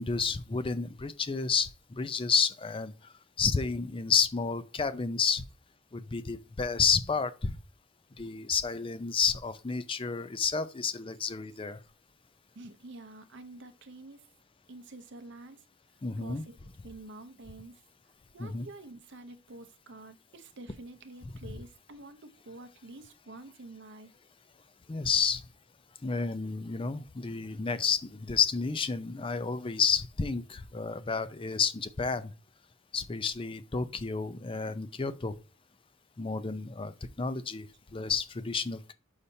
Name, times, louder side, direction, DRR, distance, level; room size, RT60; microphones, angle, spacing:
voice 1, 0.0-2.9 3.4-5.4 5.9-7.6 8.2-11.8 16.0-16.4 18.4-18.7 24.9-25.4 26.0-32.3 32.9-35.4 36.2-36.9 37.2-38.9, left 5 dB, 25° left, 0.5 m, -30 dB
voice 2, 12.6-14.2 14.7-15.6 16.2-16.6 16.8-17.8 18.3-24.1, right 2 dB, 60° right, 0.7 m, -48 dB
6.6 x 5.6 x 2.7 m
head